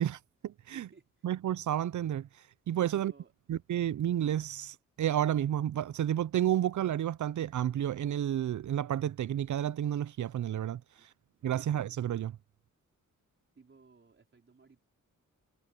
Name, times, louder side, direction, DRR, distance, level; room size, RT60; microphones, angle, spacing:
voice 1, 0.0-0.9 1.2-2.3 2.7-3.1 3.5-10.8 11.4-12.4, right 11 dB, 70° right, 0.5 m, -31 dB
voice 2, 0.7-1.3 2.9-3.3 10.9-11.1 13.6-14.8, right 4 dB, 40° right, 4.3 m, -59 dB
wide cardioid pair, 140°, 31 cm